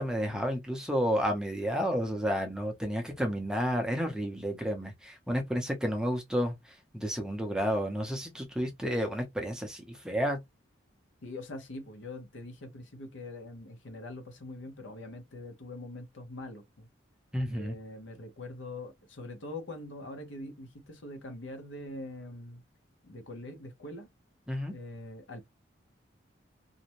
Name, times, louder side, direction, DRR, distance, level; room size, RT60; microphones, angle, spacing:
voice 1, 0.0-10.4 17.3-17.8 24.5-24.7, equal, 5° right, 0.5 m, -31 dB
voice 2, 11.2-16.9 17.5-22.6 23.0-24.1 24.7-25.4, left 2 dB, 80° left, 0.8 m, -43 dB
2.5 x 2.1 x 2.8 m
head